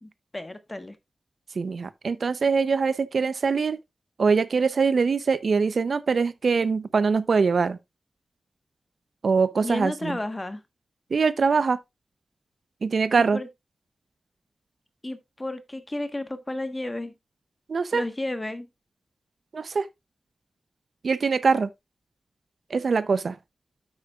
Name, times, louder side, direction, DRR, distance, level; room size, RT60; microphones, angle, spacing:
voice 1, 0.0-1.0 9.6-10.6 13.1-13.5 15.0-17.1 17.9-18.7, left 1 dB, 20° left, 1.2 m, -32 dB
voice 2, 1.6-3.8 4.2-7.8 9.2-10.2 11.1-11.8 12.8-13.4 17.7-18.0 19.5-19.9 21.0-21.7 22.7-23.4, right 5 dB, 65° right, 0.5 m, -23 dB
9.7 x 8.2 x 2.4 m
wide cardioid pair, 115°, 0 cm